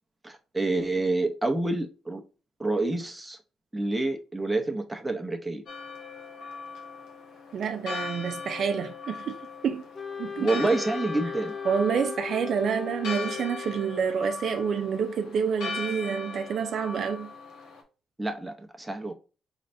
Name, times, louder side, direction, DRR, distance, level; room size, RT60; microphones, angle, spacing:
voice 1, 0.2-2.2 2.6-3.4 3.7-5.6 10.4-11.5 18.2-19.1, right 2 dB, 10° right, 0.8 m, -28 dB
Church bell, 5.7-17.8, left 4 dB, 80° left, 1.2 m, -39 dB
voice 2, 7.5-9.4 9.6-9.8 10.2-10.7 11.7-17.3, right 6 dB, 60° right, 0.4 m, -28 dB
Wind instrument woodwind instrument, 9.9-13.9, left 6 dB, 30° left, 0.6 m, -37 dB
4.0 x 3.2 x 2.6 m
cardioid pair, 90°, 0 cm